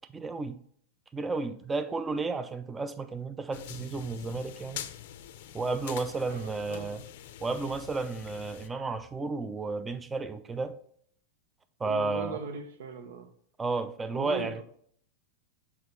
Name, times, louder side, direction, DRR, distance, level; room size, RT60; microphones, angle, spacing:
voice 1, 0.1-0.6 1.1-4.9 5.5-7.0 7.4-10.8 11.8-12.4 13.6-14.6, right 3 dB, 15° right, 0.5 m, -32 dB
sound 1, 3.5-8.7, left 11 dB, 65° left, 0.6 m, -44 dB
voice 2, 6.3-7.0 11.8-13.3 14.1-14.6, right 5 dB, 75° right, 0.9 m, -39 dB
6.5 x 4.3 x 4.0 m
hypercardioid pair, 110°, 0 cm